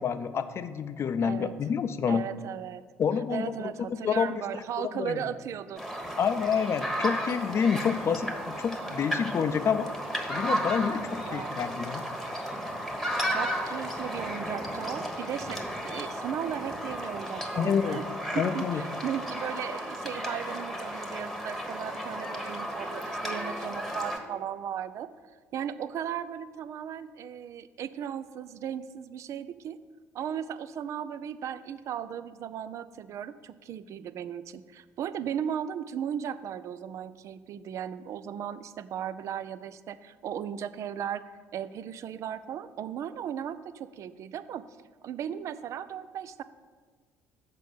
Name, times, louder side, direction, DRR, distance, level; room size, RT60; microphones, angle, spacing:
voice 1, 0.0-2.2 3.0-3.5 4.0-4.3 4.8-5.2 6.2-9.9 10.3-12.1 17.5-18.0 18.3-18.8, left 7 dB, 40° left, 10 dB, 0.5 m, -28 dB
voice 2, 1.2-1.5 2.1-2.8 3.3-5.9 11.2-11.5 13.3-18.0 18.3-25.1 25.5-29.8 30.1-41.2 41.5-44.7 45.0-46.4, right 9 dB, 45° right, 14 dB, 0.4 m, -36 dB
sound 1, 5.8-24.2, equal, ahead, 1.3 m, -34 dB
7.5 x 5.2 x 7.0 m, 1.5 s
figure-of-eight pair, 55°, 7 cm